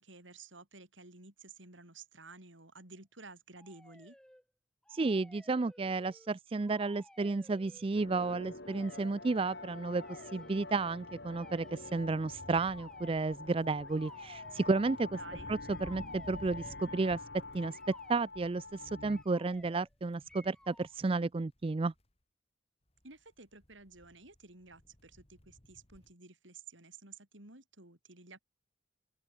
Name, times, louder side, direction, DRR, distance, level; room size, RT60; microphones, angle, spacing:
voice 1, 0.0-4.2 15.1-15.5 23.0-28.4, right 3 dB, 80° right, 5.4 m, -53 dB
sound 1, 3.5-4.4 4.8-6.3 6.6-7.9 8.6-9.1 9.9-10.6 11.3-12.0 12.6-13.3 13.8-14.8 15.6-16.8 17.7-18.2 19.1-19.9 20.3-20.9, left 1 dB, 5° left, 2.4 m, -58 dB
voice 2, 4.9-15.2 15.5-17.2 17.5-17.8 18.1-21.9, right 3 dB, 30° right, 0.4 m, -32 dB
sound 2, 7.9-19.2, left 3 dB, 60° left, 4.4 m, -46 dB
sound 3, 12.3-22.1 23.0-26.1, equal, 30° left, 2.6 m, -57 dB
open air
head